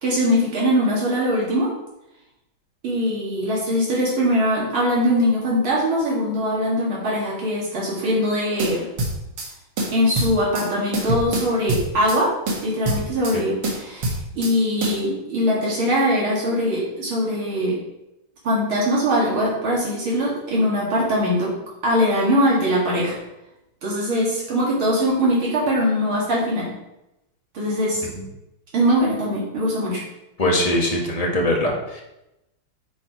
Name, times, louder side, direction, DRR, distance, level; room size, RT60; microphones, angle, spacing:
voice 1, 0.0-1.7 2.8-8.9 9.9-12.3 12.6-17.7 18.4-21.5 21.8-23.2 23.8-26.7 27.5-28.0 28.7-30.0, equal, 70° right, -6 dB, 2.7 m, -21 dB
sound 1, 8.6-9.5 9.8-10.7 10.9-12.2 12.5-13.4 13.6-14.5 14.8-15.0, right 1 dB, 85° right, 2.5 m, -25 dB
voice 2, 30.4-32.0, left 1 dB, 20° left, 0 dB, 1.1 m, -22 dB
8.3 x 4.5 x 4.7 m, 0.91 s
omnidirectional pair, 2.4 m